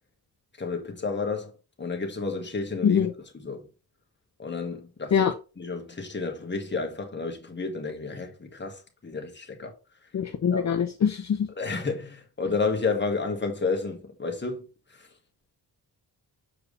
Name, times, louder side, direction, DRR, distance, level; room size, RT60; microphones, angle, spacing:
voice 1, 0.6-1.5 1.8-3.1 3.4-3.6 4.4-9.7 10.5-10.7 11.5-14.6 15.0-15.1, left 4 dB, 25° left, 1.7 m, -31 dB
voice 2, 10.1-11.5, left 7 dB, 45° left, 0.6 m, -23 dB
6.7 x 4.7 x 3.3 m
wide cardioid pair, 120°, 40 cm